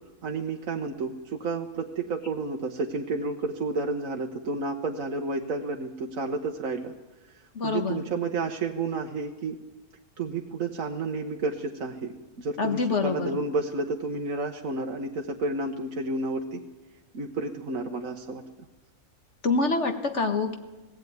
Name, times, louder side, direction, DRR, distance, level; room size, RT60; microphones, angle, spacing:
voice 1, 0.2-6.9 7.6-9.6 10.2-16.7 17.1-18.4, right 3 dB, 65° right, 3 dB, 1.5 m, -31 dB
voice 2, 7.5-8.0 12.6-13.3 19.4-20.6, left 3 dB, 50° left, 6 dB, 1.7 m, -26 dB
19.0 x 16.0 x 9.4 m, 1.1 s
omnidirectional pair, 1.6 m